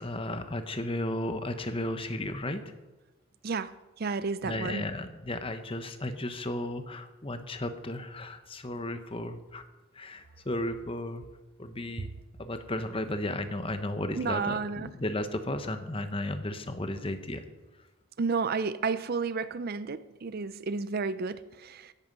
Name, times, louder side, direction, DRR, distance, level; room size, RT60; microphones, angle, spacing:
voice 1, 0.0-2.7 4.4-9.6 9.9-11.2 11.6-12.1 12.4-17.4, left 1 dB, 25° left, 9 dB, 1.0 m, -34 dB
voice 2, 3.4-4.9 14.1-14.9 18.2-21.9, right 4 dB, 45° right, 14 dB, 0.4 m, -32 dB
15.5 x 11.5 x 5.3 m, 1.1 s
head